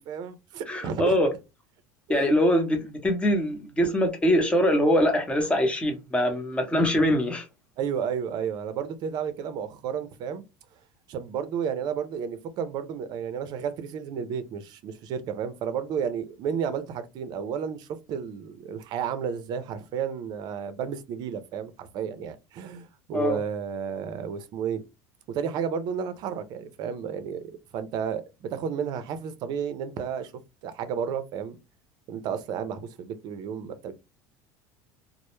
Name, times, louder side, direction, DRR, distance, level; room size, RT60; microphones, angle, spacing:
voice 1, 0.1-1.1 2.1-2.3 7.8-10.4 11.1-24.8 25.3-30.3 30.6-31.6 32.1-33.9, right 7 dB, 55° right, 0.5 m, -32 dB
voice 2, 0.7-1.3 2.1-7.5 23.1-23.4, equal, 15° left, 0.7 m, -23 dB
2.0 x 2.0 x 3.0 m
supercardioid pair, 100°, 9 cm